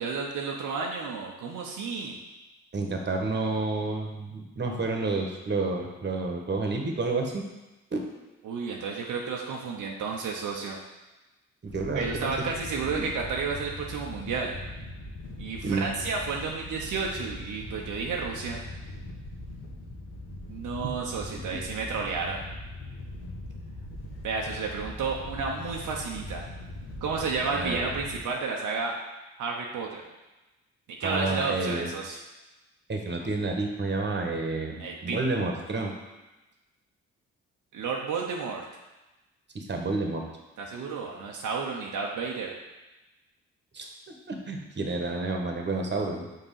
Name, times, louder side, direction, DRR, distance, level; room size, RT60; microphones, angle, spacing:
voice 1, 0.0-2.1 8.4-10.8 11.9-14.6 15.4-18.6 20.5-22.4 24.2-26.4 27.0-28.9 29.4-30.0 31.0-32.2 34.8-35.2 37.7-38.6 40.6-42.5, right 4 dB, 70° right, -1 dB, 0.9 m, -31 dB
voice 2, 2.7-7.4 7.9-8.0 11.6-12.3 13.0-13.1 15.6-15.9 20.8-20.9 21.5-21.6 27.5-27.9 31.0-31.9 32.9-35.9 39.5-40.3 43.7-46.3, right 3 dB, 35° right, 2 dB, 1.4 m, -30 dB
Wind / Boat Water vehicle, 11.7-28.2, left 1 dB, 80° left, 1.8 m, -41 dB
5.6 x 4.0 x 5.6 m, 1.1 s
supercardioid pair, 55°, 32 cm